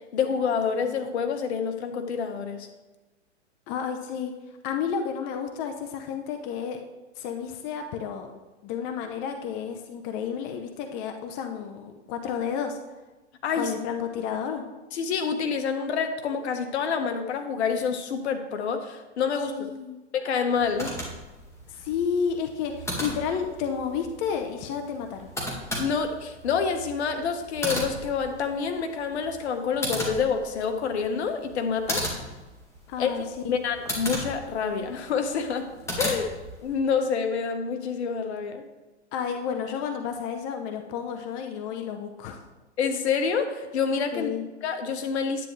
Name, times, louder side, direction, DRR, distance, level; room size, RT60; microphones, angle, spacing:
voice 1, 0.1-2.7 13.4-13.8 14.9-19.7 20.1-20.9 25.8-32.0 33.0-35.7 36.0-36.3 36.6-38.6 42.8-44.3 44.6-45.5, left 6 dB, 65° left, 6 dB, 1.4 m, -27 dB
voice 2, 3.7-4.3 4.6-6.8 7.2-8.3 8.6-12.8 13.5-14.6 19.5-20.0 21.7-25.3 32.9-33.6 39.1-42.4 44.1-44.4, left 7 dB, 30° left, 5 dB, 0.8 m, -31 dB
sound 1, 20.5-36.8, equal, 10° left, 1.9 m, -36 dB
10.5 x 9.0 x 3.3 m, 1.1 s
hypercardioid pair, 140°, 35 cm